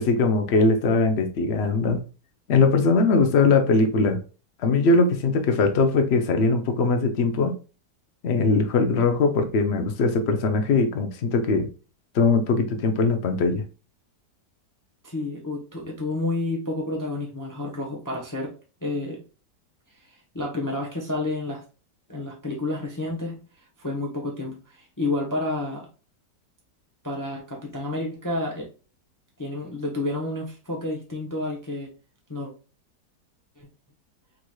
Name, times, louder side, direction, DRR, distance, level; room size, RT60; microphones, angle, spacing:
voice 1, 0.0-2.0 2.5-4.2 4.6-7.5 8.2-11.7 12.1-13.6, left 3 dB, 60° left, 0.7 m, -21 dB
voice 2, 15.0-18.5 18.8-19.2 20.3-21.6 22.1-25.9 27.0-28.7 29.4-31.9 32.3-32.5 33.6-33.7, left 2 dB, 15° left, 0.7 m, -30 dB
4.6 x 3.9 x 2.3 m
omnidirectional pair, 1.9 m